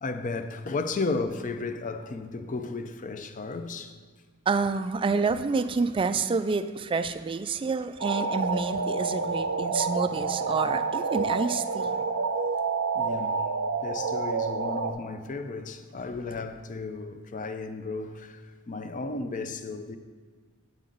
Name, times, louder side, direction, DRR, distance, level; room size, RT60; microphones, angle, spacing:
voice 1, 0.0-4.0 11.8-12.1 12.9-13.5 13.8-20.0, left 3 dB, 35° left, 0.5 m, -34 dB
voice 2, 4.5-11.9, right 4 dB, 25° right, 0.3 m, -28 dB
sound 1, 8.0-14.9, right 4 dB, 65° right, 0.6 m, -28 dB
8.6 x 8.5 x 3.9 m
head